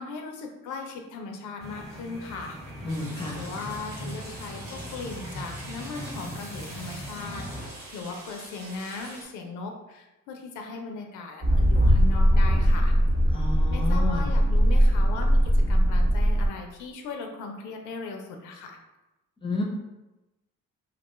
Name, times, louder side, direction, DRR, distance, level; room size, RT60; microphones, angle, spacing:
voice 1, 0.0-2.6 3.3-12.9 13.7-18.8, left 4 dB, 85° left, 3 dB, 0.5 m, -38 dB
sound 1, 1.6-7.7, equal, ahead, 1.1 m, -39 dB
voice 2, 2.8-3.4 13.3-14.3 19.4-19.6, left 3 dB, 15° left, 0 dB, 0.6 m, -31 dB
sound 2, 2.9-9.2, right 1 dB, 75° right, 1.0 m, -44 dB
sound 3, 11.4-16.5, equal, 30° right, 0.7 m, -20 dB
2.4 x 2.2 x 3.0 m, 1.0 s
cardioid pair, 90°, 30 cm